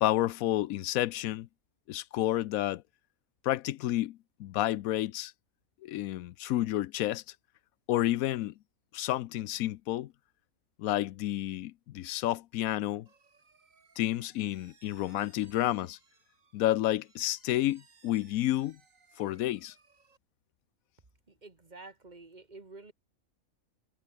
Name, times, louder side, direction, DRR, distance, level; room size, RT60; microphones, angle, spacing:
voice 1, 0.0-1.5 1.9-2.8 3.4-5.3 5.8-7.2 7.9-8.5 8.9-10.1 10.8-13.1 14.0-16.0 16.5-18.8 19.2-19.7, left 14 dB, 85° left, 1.0 m, -30 dB
sound 1, 13.1-20.2, right 4 dB, 70° right, 2.7 m, -64 dB
voice 2, 21.3-22.9, right 3 dB, 35° right, 1.7 m, -49 dB
omnidirectional pair, 1.4 m